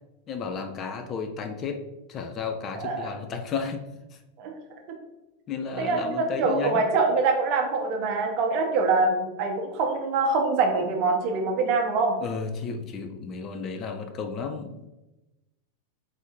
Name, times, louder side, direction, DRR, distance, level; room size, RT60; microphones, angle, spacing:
voice 1, 0.3-1.8 2.1-3.8 5.5-6.9 12.2-14.9, left 5 dB, 30° left, 6 dB, 0.4 m, -33 dB
voice 2, 2.7-3.2 4.4-4.5 5.8-12.1, right 3 dB, 45° right, 2 dB, 0.7 m, -24 dB
3.5 x 2.6 x 3.5 m, 1.0 s
figure-of-eight pair, 90°, 0 cm